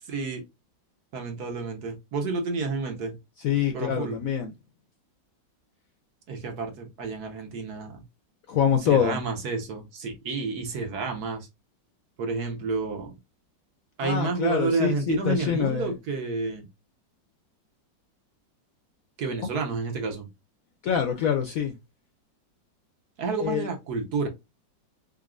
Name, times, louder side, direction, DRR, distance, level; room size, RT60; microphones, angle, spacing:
voice 1, 0.0-0.4 1.1-3.2 3.7-4.2 6.3-8.0 8.8-11.5 12.2-13.2 14.0-16.7 19.2-20.3 23.2-24.3, right 4 dB, 60° right, 1.5 m, -30 dB
voice 2, 3.4-4.5 8.5-9.2 14.0-15.9 20.8-21.7 23.4-23.7, left 8 dB, 65° left, 0.8 m, -25 dB
3.9 x 3.6 x 2.4 m
omnidirectional pair, 2.0 m